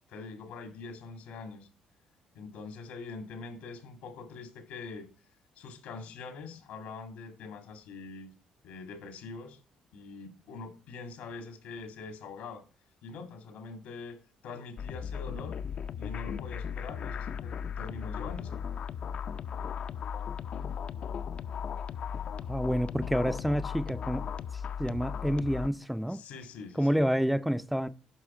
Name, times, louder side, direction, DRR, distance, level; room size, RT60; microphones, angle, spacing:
voice 1, 0.1-1.7 2.4-5.1 5.6-8.3 8.6-9.6 9.9-12.6 13.0-15.6 16.0-18.6 26.1-27.0, left 4 dB, 85° left, 2.0 m, -44 dB
sound 1, 14.8-25.7, left 7 dB, 55° left, 0.5 m, -36 dB
voice 2, 22.5-24.3 24.5-26.2 26.8-27.9, equal, ahead, 0.4 m, -29 dB
9.8 x 5.6 x 4.3 m
cardioid pair, 100°, 2 cm